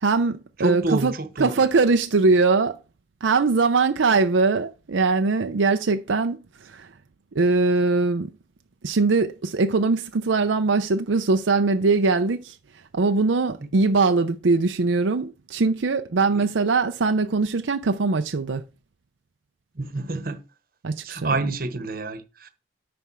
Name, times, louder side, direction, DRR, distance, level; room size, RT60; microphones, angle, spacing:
voice 1, 0.0-2.8 3.2-6.4 6.7-6.9 7.3-8.3 8.8-12.5 12.9-18.6 20.8-21.4, right 3 dB, 85° right, 0.6 m, -21 dB
voice 2, 0.6-1.6 13.6-13.7 16.3-16.5 19.8-20.4 21.0-22.5, right 2 dB, 50° right, 1.1 m, -28 dB
9.4 x 3.4 x 6.1 m
head